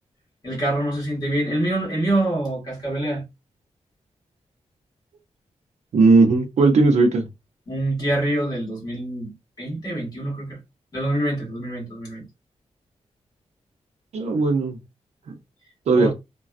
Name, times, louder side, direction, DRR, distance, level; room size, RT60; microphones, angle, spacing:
voice 1, 0.4-3.2 7.7-9.3 9.6-10.6 10.9-12.2 15.9-16.1, right 1 dB, 35° left, 1.5 m, -25 dB
voice 2, 5.9-7.3 14.1-14.8 15.9-16.1, right 3 dB, 80° right, 0.6 m, -17 dB
3.2 x 2.2 x 2.5 m
wide cardioid pair, 165°, 12 cm